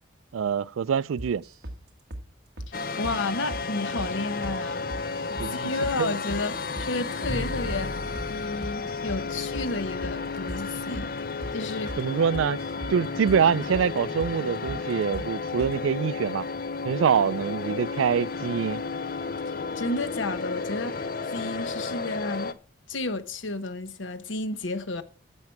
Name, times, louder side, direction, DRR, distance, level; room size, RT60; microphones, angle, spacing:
voice 1, 0.3-1.4 5.4-5.7 6.0-6.1 12.0-12.6 12.9-16.5 16.8-18.8, right 7 dB, 90° right, 0.4 m, -25 dB
sound 1, 1.2-1.8 2.1-2.3 2.6-2.7 3.0-3.2 3.5-3.7 4.0-4.1 4.4-4.6 4.9-5.5 5.8-6.0 6.3-6.5 6.8-6.9 7.2-7.4 7.7-7.8 8.1-8.3 8.6-9.2 9.5-9.7 10.0-10.2 10.5-10.6 10.9-11.1 11.4-11.6 11.9-12.0 12.3-13.0 13.3-13.4 13.7-13.9 14.2-14.4 14.7-14.8 15.1-15.3 15.6-15.8, right 1 dB, 55° right, 1.5 m, -37 dB
voice 2, 2.7-4.9 5.3-7.9 8.3-11.1 11.5-11.9 19.8-20.9 21.3-22.5 22.9-25.0, left 2 dB, 80° left, 1.0 m, -32 dB
sound 2, 2.7-22.5, left 4 dB, 45° left, 0.5 m, -33 dB
Bowed string instrument, 7.3-13.4, equal, 20° left, 1.1 m, -41 dB
11.0 x 7.4 x 4.5 m
head